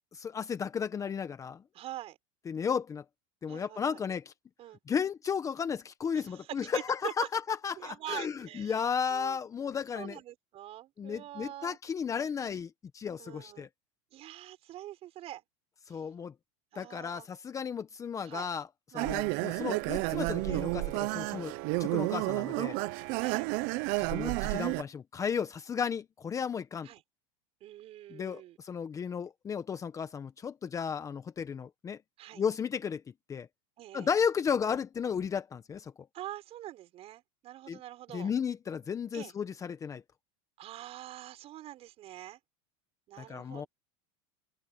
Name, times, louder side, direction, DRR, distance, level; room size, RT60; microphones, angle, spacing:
voice 1, 0.1-1.6 2.5-3.0 3.4-4.3 4.9-10.2 11.0-13.7 15.9-16.3 16.7-18.7 18.9-21.5 21.8-22.8 24.0-26.9 28.1-32.0 32.4-33.0 33.3-33.5 33.9-35.9 37.7-37.8 38.1-40.0 43.2-43.7, left 7 dB, 20° left, 1.0 m, -34 dB
voice 2, 1.7-2.2 3.5-4.0 4.6-4.8 6.1-6.5 6.7-7.3 7.8-8.8 9.1-9.4 9.9-11.8 13.2-13.7 14.1-15.4 15.9-16.0 16.7-17.3 18.2-18.5 18.9-19.2 20.5-20.6 23.2-23.5 26.8-27.0 27.6-28.6 32.2-32.4 33.8-34.1 36.1-38.3 39.1-39.3 40.6-42.4 43.1-43.7, right 14 dB, 40° right, 6.7 m, -44 dB
sound 1, 19.0-24.8, right 24 dB, 55° right, 0.8 m, -31 dB
open air
supercardioid pair, 135°, 16 cm